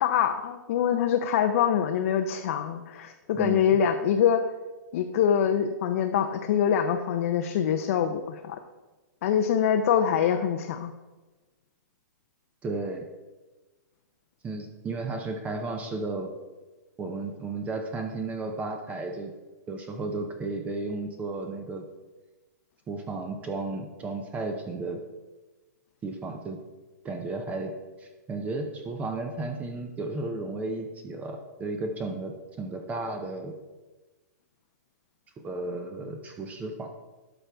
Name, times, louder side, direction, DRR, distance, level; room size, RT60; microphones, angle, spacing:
voice 1, 0.0-4.4 4.9-8.6 9.2-10.9, left 8 dB, 50° left, 5 dB, 0.6 m, -24 dB
voice 2, 3.3-3.7 12.6-13.1 14.4-16.3 17.0-19.3 19.7-21.8 22.9-25.0 26.0-26.6 27.0-27.7 28.0-33.5 35.4-36.9, right 3 dB, 15° right, 5 dB, 0.6 m, -33 dB
11.0 x 5.8 x 3.4 m, 1.2 s
hypercardioid pair, 150°, 10 cm